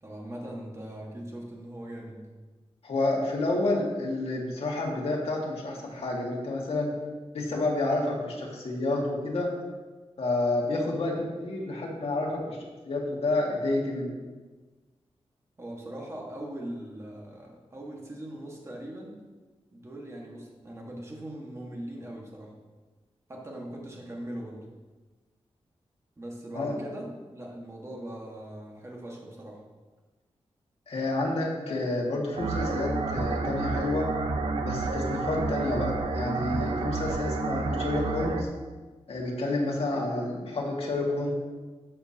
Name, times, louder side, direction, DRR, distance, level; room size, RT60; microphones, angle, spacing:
voice 1, 0.0-2.3 15.6-19.2 19.7-22.5 23.3-24.7 26.2-29.6, right 1 dB, 25° right, -2 dB, 1.7 m, -40 dB
voice 2, 2.8-6.9 7.3-9.5 10.2-12.6 12.9-14.2 26.5-26.8 30.9-34.1 34.6-38.5 39.1-41.3, left 2 dB, 65° left, -2 dB, 2.0 m, -29 dB
sound 1, 32.4-38.4, right 3 dB, 60° right, 0.8 m, -30 dB
12.5 x 6.6 x 2.9 m, 1.3 s
wide cardioid pair, 125°, 11 cm